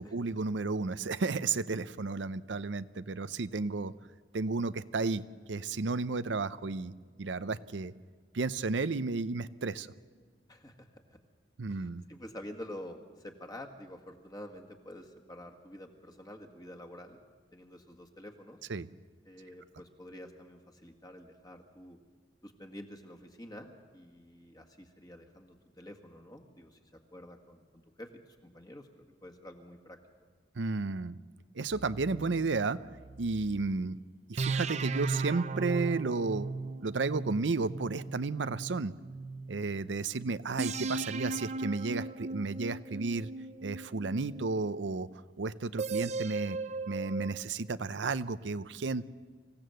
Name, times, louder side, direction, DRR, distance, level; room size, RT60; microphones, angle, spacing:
voice 1, 0.0-3.9 4.3-6.9 7.2-7.9 8.3-9.9 11.6-12.0 18.7-18.9 30.6-31.2 31.5-32.8 33.2-34.0 34.3-36.5 36.8-38.9 39.5-43.3 43.6-45.1 45.4-46.6 46.9-49.1, right 3 dB, 85° right, 14 dB, 0.6 m, -32 dB
voice 2, 10.5-11.2 11.7-17.2 17.5-18.6 19.2-22.0 22.4-26.8 27.1-28.1 28.5-30.0, left 1 dB, 20° left, 3 dB, 1.8 m, -48 dB
sound 1, 31.7-33.7 34.4-39.6 40.6-44.8 45.8-47.3, right 3 dB, 40° right, 0.6 m, -37 dB
25.0 x 16.0 x 7.8 m, 1.5 s
head